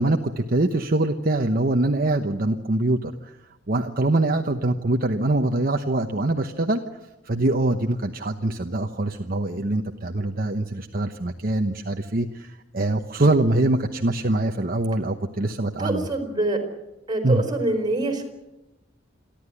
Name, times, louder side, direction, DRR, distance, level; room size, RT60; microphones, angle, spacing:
voice 1, 0.0-3.3 3.7-6.8 7.3-16.1 17.2-17.4, right 2 dB, 50° right, 4 dB, 1.0 m, -23 dB
voice 2, 15.8-16.6 17.1-18.2, right 2 dB, 20° right, 5 dB, 4.6 m, -25 dB
28.5 x 12.0 x 9.8 m, 0.99 s
head